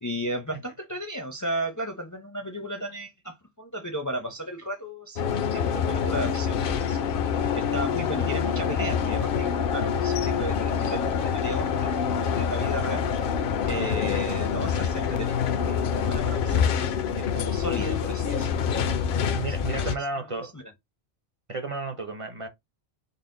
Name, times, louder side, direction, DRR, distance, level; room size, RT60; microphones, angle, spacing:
voice 1, 0.0-13.1 13.7-18.7 19.8-20.7, right 1 dB, 20° left, 0.5 m, -35 dB
sound 1, 5.2-20.0, left 7 dB, 65° left, 0.7 m, -26 dB
voice 2, 13.8-14.6 17.8-17.9 19.3-20.5 21.5-22.5, right 3 dB, 35° right, 0.7 m, -34 dB
4.0 x 2.0 x 3.7 m
omnidirectional pair, 1.1 m